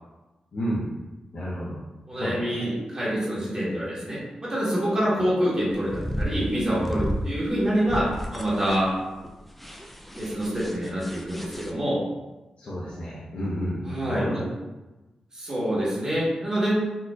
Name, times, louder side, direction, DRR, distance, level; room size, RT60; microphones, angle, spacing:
voice 1, 0.5-0.9 1.3-1.8 2.1-2.6 12.6-14.5, equal, 60° left, -8 dB, 0.8 m, -31 dB
voice 2, 2.1-8.9 10.2-12.0 13.8-14.4 15.3-16.7, equal, 30° right, -8 dB, 1.2 m, -26 dB
sound 1, 5.7-11.7, equal, 5° left, 0.4 m, -33 dB
4.1 x 2.6 x 2.4 m, 1.1 s
cardioid pair, 70°, 2 cm